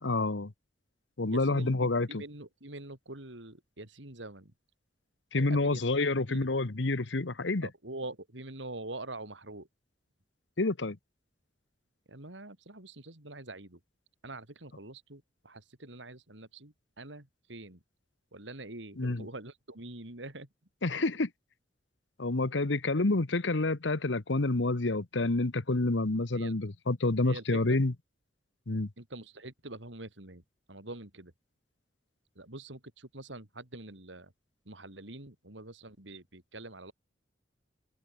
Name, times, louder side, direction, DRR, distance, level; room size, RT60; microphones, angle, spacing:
voice 1, 0.0-0.5 1.2-2.2 5.3-7.7 10.6-11.0 19.0-19.3 20.8-21.3 22.2-27.9 28.7-28.9, left 2 dB, 75° left, 1.2 m, -28 dB
voice 2, 1.3-4.5 5.3-5.8 6.3-6.4 7.6-9.7 12.1-13.8 14.2-17.8 18.3-20.5 26.3-26.6 27.2-27.8 29.0-30.4 30.7-31.3 32.4-34.3 34.7-36.9, right 2 dB, 75° right, 4.1 m, -45 dB
head